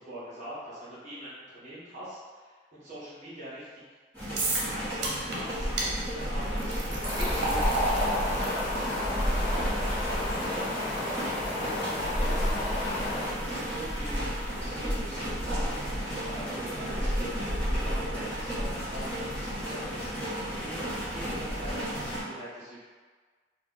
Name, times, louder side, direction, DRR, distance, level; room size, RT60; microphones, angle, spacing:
voice 1, 0.0-3.8 4.7-10.7 11.2-12.6 12.9-22.8, right 1 dB, 40° right, -10 dB, 1.0 m, -43 dB
sound 1, 4.1-22.2, equal, 10° left, 1.1 m, -32 dB
sound 2, 4.4-4.7 5.0-5.4 5.8-5.9 6.6-13.7, right 1 dB, 75° right, 0.8 m, -34 dB
Wind, 7.0-13.3, left 2 dB, 45° left, 0.6 m, -34 dB
3.0 x 2.3 x 3.7 m, 1.5 s
head